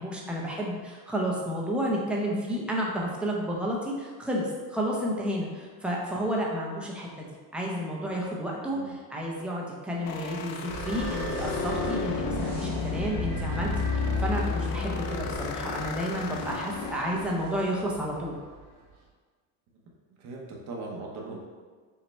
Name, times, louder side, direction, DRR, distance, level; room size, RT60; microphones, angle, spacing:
voice 1, 0.0-7.3 7.5-18.4, equal, 5° right, -3 dB, 0.5 m, -31 dB
voice 2, 8.6-9.0 20.2-21.4, right 3 dB, 45° right, -2 dB, 0.8 m, -39 dB
sound 1, 10.1-17.4, left 5 dB, 60° left, 0.5 m, -32 dB
sound 2, 10.7-18.9, right 4 dB, 75° right, 1.4 m, -39 dB
5.6 x 2.2 x 4.2 m, 1.5 s
cardioid pair, 155°, 39 cm